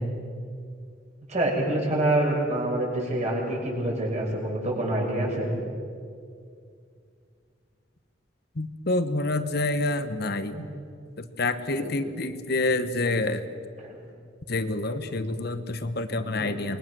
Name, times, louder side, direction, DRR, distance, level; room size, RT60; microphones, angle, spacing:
voice 1, 1.3-5.5 10.5-10.7 11.8-11.9 13.8-14.0 16.4-16.6, right 1 dB, 40° right, -2 dB, 6.4 m, -27 dB
voice 2, 8.5-10.7 11.2-13.5 14.5-16.8, left 2 dB, 55° left, 10 dB, 1.2 m, -27 dB
27.5 x 21.5 x 6.3 m, 2.3 s
head